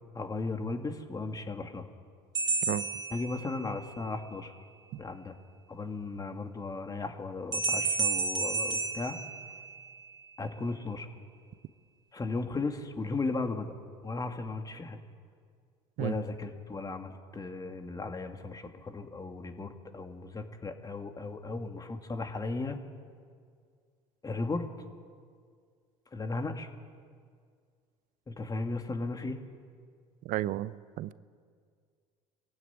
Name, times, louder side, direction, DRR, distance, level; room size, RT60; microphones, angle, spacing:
voice 1, 0.1-1.9 3.1-4.5 5.0-5.3 5.7-9.2 10.4-11.1 12.1-13.8 14.0-15.0 16.0-22.8 24.2-24.7 26.1-26.7 28.3-29.4, left 3 dB, 25° left, 5 dB, 2.4 m, -36 dB
sound 1, 2.3-3.9 7.5-10.0, right 4 dB, 25° right, 3.5 m, -31 dB
voice 2, 30.2-31.1, right 14 dB, 60° right, 16 dB, 0.8 m, -33 dB
22.5 x 15.5 x 9.8 m, 2.1 s
hypercardioid pair, 75°, 15 cm